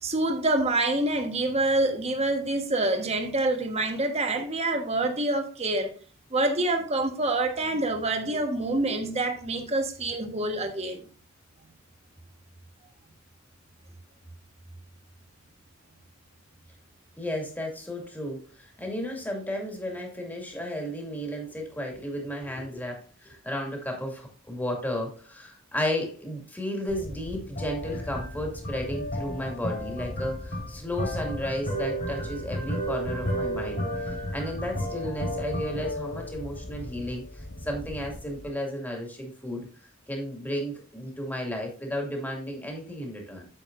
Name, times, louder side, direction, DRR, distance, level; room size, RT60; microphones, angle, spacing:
voice 1, 0.0-5.9 6.3-11.0, right 2 dB, 30° right, 1.3 m, -26 dB
voice 2, 17.2-39.7 40.1-43.5, equal, 10° left, 2.2 m, -33 dB
sound 1, 26.9-38.5, equal, 45° left, 3.0 m, -33 dB
8.9 x 7.3 x 2.5 m
head